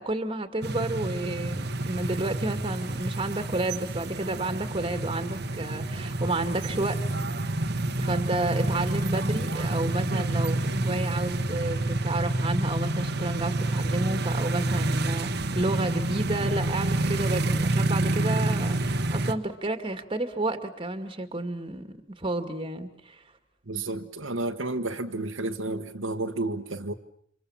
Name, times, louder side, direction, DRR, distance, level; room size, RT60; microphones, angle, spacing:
voice 1, 0.0-7.0 7.3-7.6 8.0-23.2, right 2 dB, 25° right, 8 dB, 2.3 m, -31 dB
sound 1, 0.6-19.3, right 2 dB, 55° right, 1.4 m, -28 dB
voice 2, 23.7-26.9, right 2 dB, 75° right, 5 dB, 1.5 m, -31 dB
29.5 x 26.5 x 7.3 m, 0.66 s
head